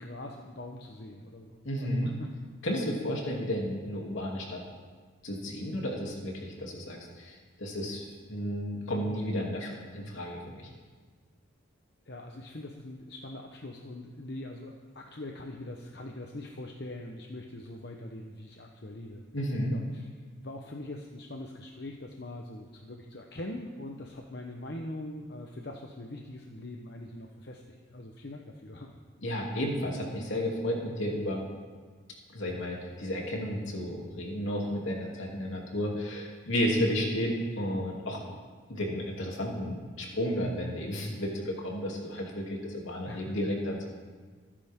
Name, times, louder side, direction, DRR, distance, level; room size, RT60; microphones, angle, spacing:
voice 1, 0.0-2.3 3.1-3.2 12.1-19.2 19.7-20.1 20.4-28.9 43.1-43.3, left 1 dB, 55° left, 1 dB, 1.0 m, -42 dB
voice 2, 1.6-2.1 2.6-4.6 5.2-10.7 19.3-19.7 29.2-31.4 32.3-38.2 38.7-43.9, equal, 75° left, -2 dB, 3.0 m, -32 dB
26.0 x 10.0 x 3.8 m, 1.5 s
head